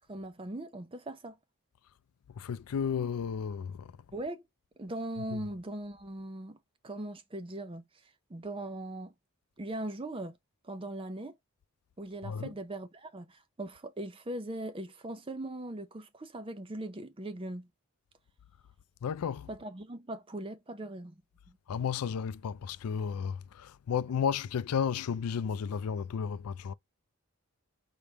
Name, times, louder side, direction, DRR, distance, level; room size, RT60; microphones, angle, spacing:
voice 1, 0.1-1.4 4.1-4.4 4.8-6.6 6.8-7.9 8.3-9.1 9.6-10.4 10.6-11.4 12.0-17.7 19.5-21.2 21.5-21.6, right 1 dB, 25° right, 0.5 m, -40 dB
voice 2, 2.4-3.9 5.3-5.4 12.2-12.5 19.0-19.5 21.7-26.7, left 7 dB, 90° left, 0.4 m, -33 dB
4.7 x 3.4 x 2.8 m
head